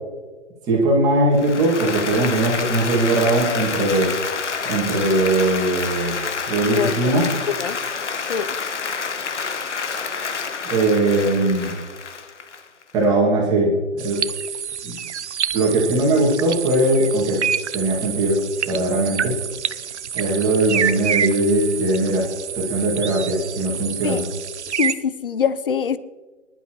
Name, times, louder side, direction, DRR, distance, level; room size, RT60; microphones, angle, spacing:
voice 1, 0.7-4.1 4.6-6.1 6.5-7.3 10.6-11.7 12.9-14.2 14.8-15.0 15.5-17.4 17.7-19.3 20.1-22.2 22.6-24.2, right 2 dB, 10° right, -3 dB, 2.2 m, -20 dB
Applause, 1.3-13.0, left 5 dB, 65° left, 1.5 m, -28 dB
voice 2, 6.7-7.2 7.6-7.8 8.3-8.5 24.0-24.2 24.8-26.0, left 7 dB, 45° left, 16 dB, 0.7 m, -24 dB
sound 1, 14.0-24.9, right 8 dB, 65° right, 0.7 m, -28 dB
25.0 x 11.5 x 3.1 m, 1.4 s
hypercardioid pair, 165°, 38 cm